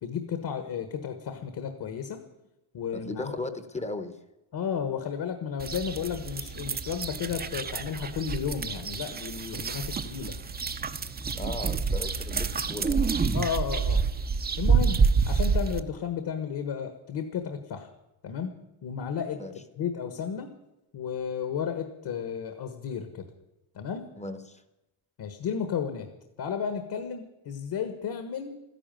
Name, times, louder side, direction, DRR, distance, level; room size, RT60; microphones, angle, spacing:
voice 1, 0.0-2.2 2.7-3.4 4.5-10.4 13.3-14.0 14.6-17.9 18.2-18.5 18.8-19.4 19.8-20.5 20.9-23.3 23.8-24.1 25.2-26.1 26.4-28.6, left 7 dB, 50° left, 8 dB, 1.6 m, -33 dB
voice 2, 2.9-4.2 11.3-13.1 19.4-19.5 24.2-24.6, left 2 dB, 15° left, 11 dB, 0.9 m, -37 dB
sound 1, 5.6-15.8, right 5 dB, 20° right, 0.6 m, -28 dB
14.0 x 11.0 x 9.1 m, 0.94 s
cardioid pair, 170°, 48 cm